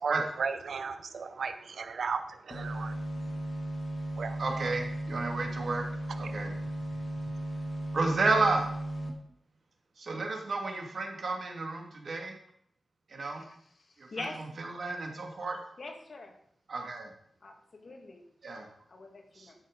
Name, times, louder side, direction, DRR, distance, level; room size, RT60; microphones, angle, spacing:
voice 1, 0.0-3.0 4.2-4.6 6.2-6.3, right 5 dB, 75° right, 9 dB, 0.7 m, -35 dB
sound 1, 2.5-9.1, right 1 dB, 25° left, 2.4 m, -36 dB
voice 2, 4.4-5.8 6.2-6.5 7.9-8.7 10.0-12.3 13.1-13.4 14.1-15.6 16.7-17.1 18.4-18.7 19.4-19.5, right 3 dB, 60° right, 2 dB, 2.5 m, -31 dB
voice 3, 15.8-16.3 17.4-18.2 18.9-19.5, left 3 dB, 50° left, 3 dB, 1.9 m, -42 dB
13.0 x 6.4 x 5.3 m, 0.67 s
wide cardioid pair, 110°, 0 cm